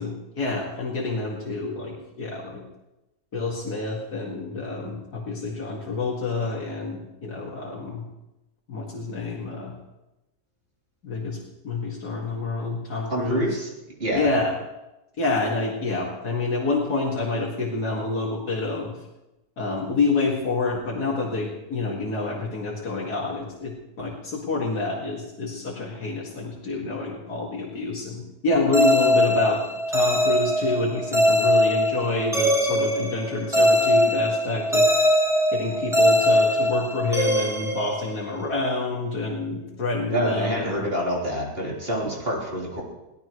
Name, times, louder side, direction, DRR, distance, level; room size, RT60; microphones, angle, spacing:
voice 1, 0.0-2.6 3.3-8.1 8.7-9.7 11.0-11.4 11.6-13.5 14.1-14.5 15.2-18.9 19.6-29.6 29.9-34.9 35.5-40.9, left 3 dB, 75° left, -3 dB, 2.7 m, -28 dB
voice 2, 13.1-13.7 14.0-14.3 40.1-42.8, equal, 35° right, -3 dB, 4.0 m, -26 dB
sound 1, 28.7-38.5, equal, ahead, 1.6 m, -21 dB
23.0 x 17.0 x 3.2 m, 0.97 s
omnidirectional pair, 1.7 m